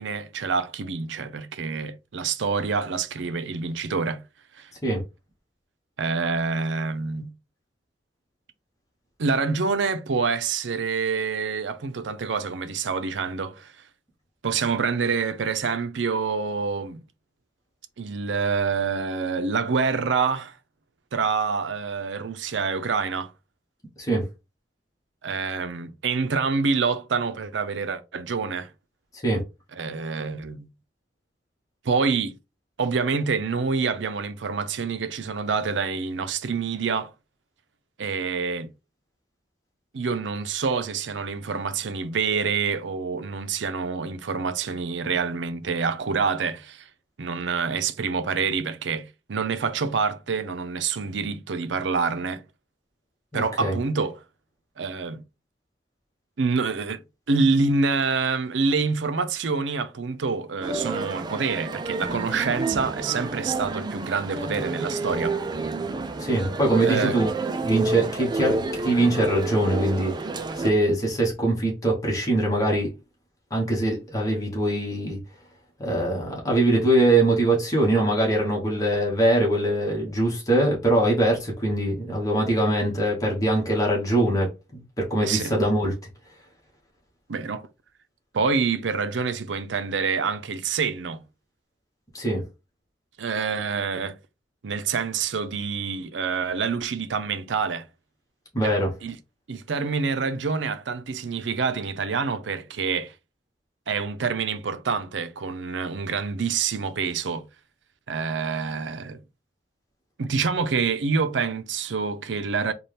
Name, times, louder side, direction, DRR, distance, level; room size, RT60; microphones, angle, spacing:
voice 1, 0.0-4.2 4.6-4.7 6.0-7.3 9.2-13.7 14.4-17.0 18.0-20.6 21.1-23.3 25.2-28.7 29.7-30.7 31.8-32.3 32.8-37.1 38.0-38.7 39.9-46.9 47.2-52.4 53.3-54.2 54.8-55.2 56.4-57.0 57.3-65.4 66.8-67.2 85.2-85.5 87.3-87.7 88.3-91.2 93.2-94.2 94.6-97.9 98.6-98.7 99.0-99.2 99.5-103.1 103.9-107.4 108.1-109.2 110.2-112.7, right 5 dB, 80° right, 0.5 m, -27 dB
voice 2, 53.3-53.8 66.2-67.3 67.6-72.9 73.5-75.2 75.8-85.9 92.1-92.4 98.5-98.9, right 1 dB, 20° left, 1.2 m, -23 dB
Male speech man speaking, 60.6-70.7, right 3 dB, 25° right, 0.4 m, -30 dB
4.2 x 2.4 x 3.3 m
head